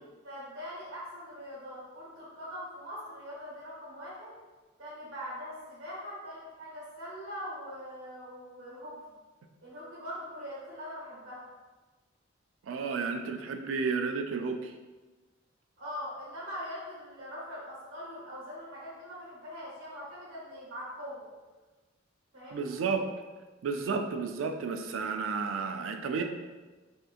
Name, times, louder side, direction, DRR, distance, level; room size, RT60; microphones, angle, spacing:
voice 1, 0.2-4.3 4.8-9.2 9.6-11.4 15.8-21.3 22.3-22.8 26.1-26.2, equal, 85° right, -7 dB, 1.4 m, -42 dB
voice 2, 12.6-14.7 22.5-23.1 23.6-26.2, right 5 dB, 70° right, 6 dB, 0.3 m, -32 dB
3.4 x 2.9 x 2.3 m, 1.2 s
head